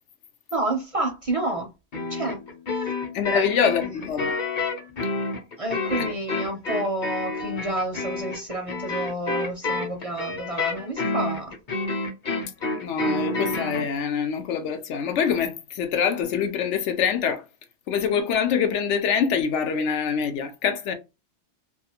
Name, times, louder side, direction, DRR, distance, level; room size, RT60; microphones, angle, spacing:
voice 1, 0.5-1.7 2.1-2.4 2.7-2.9 3.3-4.0 5.6-11.6, right 2 dB, 45° right, 0.5 m, -29 dB
sound 1, 1.9-13.9, left 3 dB, 45° left, 0.8 m, -29 dB
voice 2, 3.1-4.4 12.8-17.4 17.9-20.9, left 7 dB, 85° left, 0.9 m, -25 dB
2.5 x 2.4 x 2.8 m
omnidirectional pair, 1.2 m